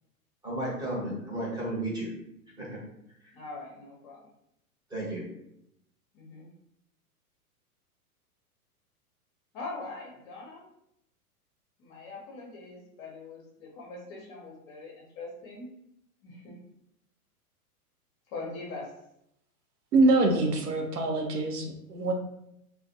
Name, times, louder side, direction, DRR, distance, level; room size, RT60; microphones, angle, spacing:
voice 1, 0.4-2.1 2.6-2.7 4.9-5.2, right 1 dB, 10° right, -6 dB, 0.9 m, -33 dB
voice 2, 3.3-4.3 6.1-6.5 9.5-10.7 11.8-15.7 16.2-16.6 18.3-18.9, left 3 dB, 35° left, -1 dB, 0.7 m, -42 dB
voice 3, 19.9-22.1, right 2 dB, 85° right, 2 dB, 0.7 m, -24 dB
2.4 x 2.2 x 2.6 m, 0.79 s
hypercardioid pair, 115°, 45 cm